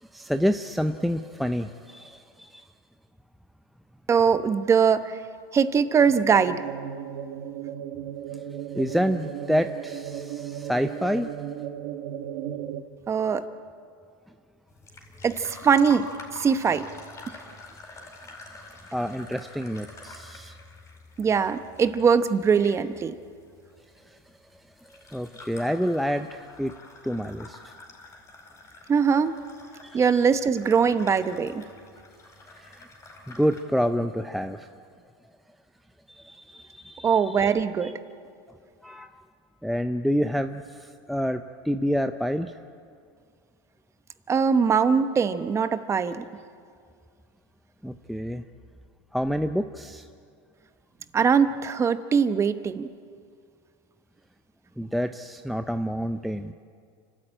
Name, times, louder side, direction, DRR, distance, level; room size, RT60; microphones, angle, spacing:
voice 1, 0.1-2.7 8.7-11.3 18.9-20.5 24.1-24.2 25.1-26.7 27.0-27.6 29.8-30.0 32.5-32.9 33.3-34.7 36.1-37.5 37.8-37.9 38.8-39.2 39.6-42.6 47.8-48.4 49.1-50.1 54.8-56.5, equal, ahead, 8 dB, 0.5 m, -28 dB
voice 2, 4.1-5.2 5.5-6.6 13.1-13.4 15.2-16.0 16.3-16.9 21.2-23.1 28.9-29.3 29.9-31.6 37.0-37.9 44.3-46.2 51.1-52.9, right 6 dB, 20° right, 11 dB, 0.9 m, -21 dB
sound 1, 6.0-12.8, right 10 dB, 60° right, 1.5 m, -35 dB
teatime serving tea carolyn, 14.7-33.6, left 2 dB, 20° left, 4.8 m, -47 dB
29.5 x 13.0 x 8.9 m, 2.2 s
supercardioid pair, 135°, 14 cm